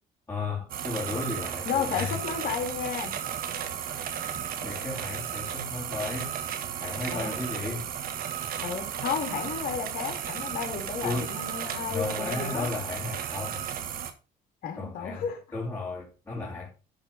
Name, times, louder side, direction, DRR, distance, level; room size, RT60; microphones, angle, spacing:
voice 1, 0.3-2.2 4.6-6.3 6.8-7.9 11.0-11.3 11.9-13.6 14.7-15.3 15.5-16.7, left 3 dB, 20° left, 3.1 m, -34 dB
sound 1, 0.7-14.1, right 9 dB, 60° right, 1.5 m, -34 dB
voice 2, 1.7-3.1 7.1-7.4 8.6-12.7 14.6-15.4, left 7 dB, 60° left, 2.8 m, -32 dB
11.5 x 4.1 x 5.4 m
cardioid pair, 110°, 17 cm